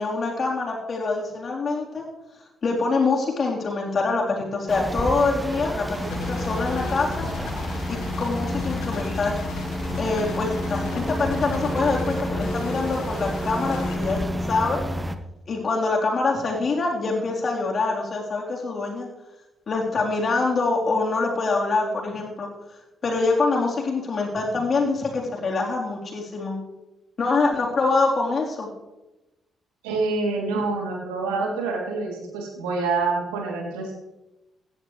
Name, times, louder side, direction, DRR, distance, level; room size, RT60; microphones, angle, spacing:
voice 1, 0.0-2.0 2.6-7.3 7.9-9.4 10.0-14.8 15.5-19.1 19.7-22.5 23.0-26.6 27.2-28.7, left 3 dB, 45° left, -2 dB, 3.7 m, -25 dB
sound 1, 4.7-15.2, equal, 15° right, 1.1 m, -30 dB
sound 2, 5.9-14.2, left 5 dB, 70° left, 1.6 m, -35 dB
voice 2, 29.8-33.9, right 3 dB, 80° right, -1 dB, 2.9 m, -26 dB
16.5 x 11.0 x 3.3 m, 0.99 s
hypercardioid pair, 45°, 0 cm